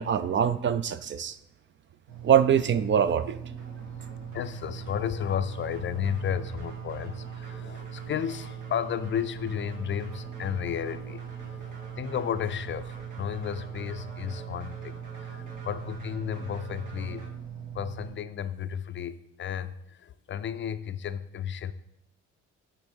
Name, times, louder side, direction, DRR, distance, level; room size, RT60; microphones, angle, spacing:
voice 1, 0.0-1.4 2.2-3.4, right 8 dB, 40° right, 14 dB, 0.4 m, -23 dB
sound 1, 2.1-18.2, right 8 dB, 60° right, 1.7 m, -40 dB
sound 2, 3.6-17.3, right 1 dB, 80° right, 1.7 m, -49 dB
voice 2, 4.3-14.9 15.2-17.2 17.7-21.7, left 9 dB, 40° left, 12 dB, 0.4 m, -33 dB
9.8 x 3.7 x 4.5 m, 0.80 s
cardioid pair, 85°, 30 cm